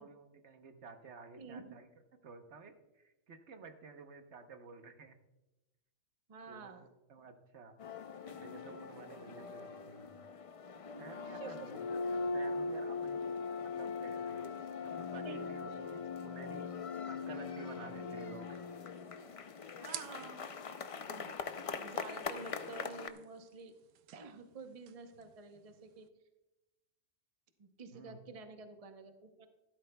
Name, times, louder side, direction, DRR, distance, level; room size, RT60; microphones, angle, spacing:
voice 1, 0.0-1.9 2.2-5.2 6.5-7.7 8.2-10.2 11.0-13.3 13.6-14.5 14.8-16.7 17.1-18.6 19.3-19.4 27.9-28.2, right 4 dB, 65° right, 7 dB, 1.2 m, -52 dB
voice 2, 1.4-1.7 6.3-6.9 11.2-11.7 13.8-13.9 15.1-15.4 19.8-20.4 21.1-21.4 21.8-23.7 24.1-26.1 27.6-29.5, right 4 dB, 35° right, 6 dB, 0.8 m, -50 dB
sound 1, 7.8-23.1, left 4 dB, 60° left, 0.3 m, -41 dB
sound 2, 18.4-26.1, right 10 dB, 85° right, 1.0 m, -54 dB
14.5 x 12.5 x 2.2 m, 0.99 s
omnidirectional pair, 1.3 m